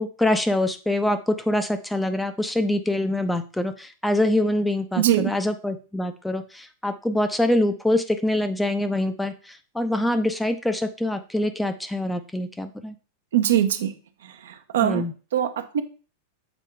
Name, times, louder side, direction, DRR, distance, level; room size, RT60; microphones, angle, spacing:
voice 1, 0.0-12.9 14.8-15.1, left 1 dB, 5° left, 8 dB, 0.5 m, -25 dB
voice 2, 5.0-5.3 13.3-13.9 14.2-15.0 15.3-15.8, right 11 dB, 60° right, 8 dB, 0.6 m, -22 dB
7.0 x 4.5 x 3.4 m, 0.36 s
figure-of-eight pair, 90°, 0 cm